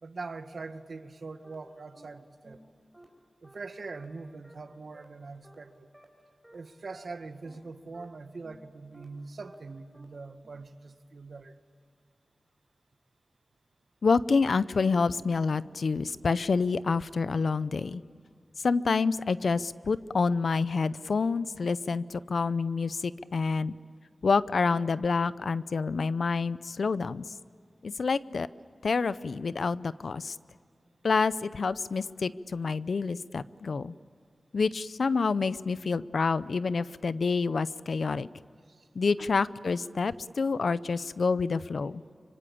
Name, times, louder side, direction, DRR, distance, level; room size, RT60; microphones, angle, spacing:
voice 1, 0.0-2.6 3.4-5.9 6.5-11.5 38.7-38.9 39.2-39.3 40.9-41.0, right 3 dB, 70° right, 9 dB, 1.4 m, -43 dB
sound 1, 1.4-1.5 1.9-2.0 2.4-2.6 2.9-3.0 3.4-3.5 3.9-4.0 4.4-4.5 4.9-5.0 5.4-5.5 5.9-6.0 6.4-6.5 6.9-7.0 7.4-7.5 7.9-8.0 8.4-8.6 8.9-9.0 9.4-9.5 9.9-10.0 10.4-10.5, right 1 dB, 10° right, 4.8 m, -54 dB
voice 2, 14.0-18.0 18.6-23.7 24.2-27.2 27.8-28.5 28.8-30.4 31.0-33.9 34.5-38.3 38.9-42.0, left 4 dB, 80° left, 16 dB, 0.6 m, -28 dB
25.0 x 25.0 x 8.6 m, 2.2 s
wide cardioid pair, 85°, 0 cm